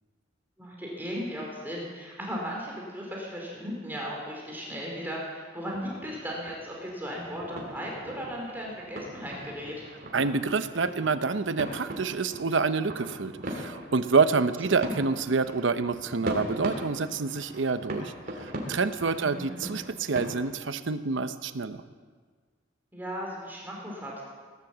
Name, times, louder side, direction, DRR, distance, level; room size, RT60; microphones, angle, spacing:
voice 1, 0.6-9.7 14.8-14.9 19.2-19.7 22.9-24.2, equal, 10° right, -3 dB, 2.8 m, -36 dB
sound 1, 5.7-20.4, equal, 50° right, 2.6 m, -40 dB
voice 2, 10.1-21.8, right 4 dB, 70° right, 11 dB, 0.8 m, -27 dB
18.5 x 10.5 x 7.4 m, 1.6 s
head